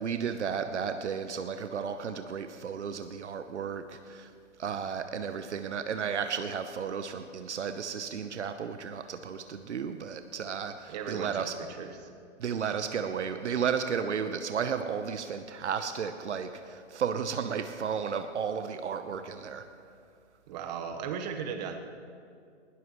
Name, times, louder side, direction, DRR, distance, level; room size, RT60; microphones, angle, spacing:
voice 1, 0.0-4.3 4.6-11.5 12.4-19.7, right 7 dB, 70° right, 8 dB, 1.0 m, -33 dB
voice 2, 10.9-11.5 11.8-12.1 20.5-21.7, right 7 dB, 35° right, 5 dB, 1.3 m, -36 dB
19.5 x 17.0 x 3.2 m, 2.3 s
hypercardioid pair, 140°, 36 cm